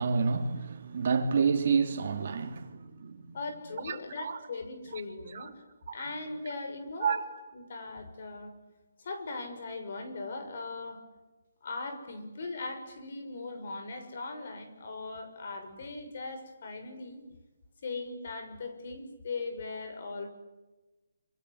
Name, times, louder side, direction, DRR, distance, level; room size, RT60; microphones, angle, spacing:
voice 1, 0.0-3.3 3.9-4.4 4.9-5.0 5.3-5.4 7.0-7.2, right 5 dB, 45° right, 3.6 m, -29 dB
voice 2, 3.3-5.6 5.9-7.3 7.5-8.6 9.0-11.0 11.6-17.2 17.8-20.3, left 3 dB, 50° left, 6.4 m, -39 dB
27.0 x 25.5 x 8.3 m
hypercardioid pair, 170°, 0 cm